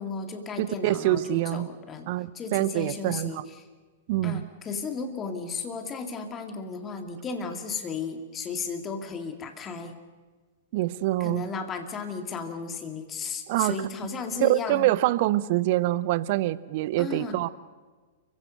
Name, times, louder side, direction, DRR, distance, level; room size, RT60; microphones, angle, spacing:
voice 1, 0.0-2.1 2.3-3.7 4.2-10.0 11.2-14.9 17.0-17.4, left 5 dB, 20° left, 6 dB, 2.3 m, -34 dB
voice 2, 0.6-1.7 2.1-3.4 4.1-4.4 10.7-11.4 13.5-13.8 14.4-17.5, right 16 dB, 45° right, 18 dB, 0.8 m, -25 dB
30.0 x 16.0 x 6.6 m, 1.4 s
figure-of-eight pair, 105°, 0 cm